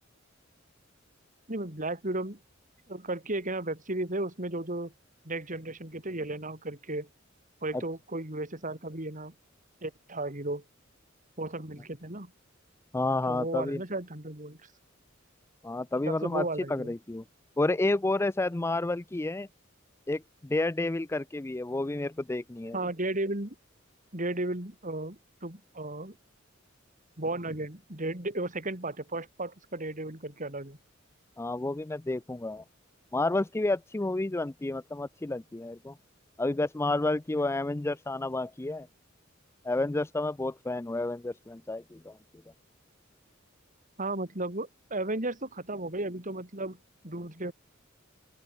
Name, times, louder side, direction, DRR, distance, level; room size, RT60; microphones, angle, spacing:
voice 1, 1.5-2.4 2.9-4.9 5.2-7.1 7.6-9.3 9.8-10.6 11.4-12.3 13.3-14.6 16.0-16.9 22.7-23.5 24.1-26.2 27.2-30.8 44.0-46.8 47.0-47.5, right 2 dB, 40° right, 4.8 m, -34 dB
voice 2, 12.9-13.8 15.6-17.2 17.6-19.5 20.1-22.8 31.4-32.6 33.1-35.9 36.4-38.9 39.6-42.2, left 2 dB, 15° left, 0.4 m, -30 dB
open air
head